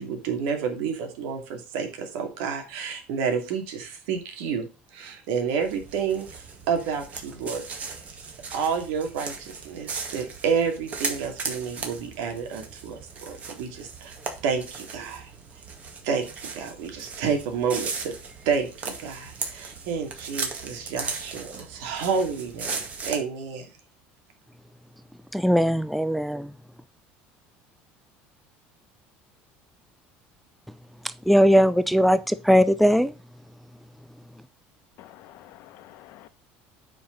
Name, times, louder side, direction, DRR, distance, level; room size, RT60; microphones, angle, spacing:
voice 1, 0.0-6.3 6.7-8.0 8.5-14.1 14.4-15.3 16.0-16.3 16.5-18.1 18.5-23.7, right 6 dB, 85° right, 2.6 m, -29 dB
sound 1, 5.6-23.2, right 5 dB, 35° right, 2.0 m, -37 dB
voice 2, 25.3-26.5 31.3-33.1, equal, ahead, 0.4 m, -19 dB
voice 3, 35.0-36.3, left 14 dB, 65° left, 1.1 m, -48 dB
8.9 x 5.2 x 4.0 m
cardioid pair, 140°, 4 cm